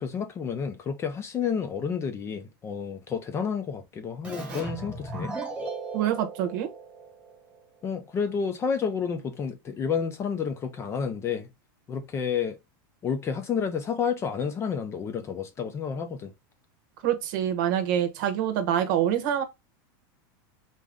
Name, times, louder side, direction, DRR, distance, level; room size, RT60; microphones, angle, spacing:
voice 1, 0.0-5.3 7.8-11.5 11.9-12.6 13.0-16.3, left 6 dB, 20° left, 0.5 m, -30 dB
Keyboard (musical), 4.2-7.6, right 2 dB, 10° right, 1.3 m, -37 dB
voice 2, 5.9-6.7 17.0-19.4, right 10 dB, 60° right, 0.9 m, -26 dB
3.9 x 2.6 x 3.4 m
supercardioid pair, 145°, 12 cm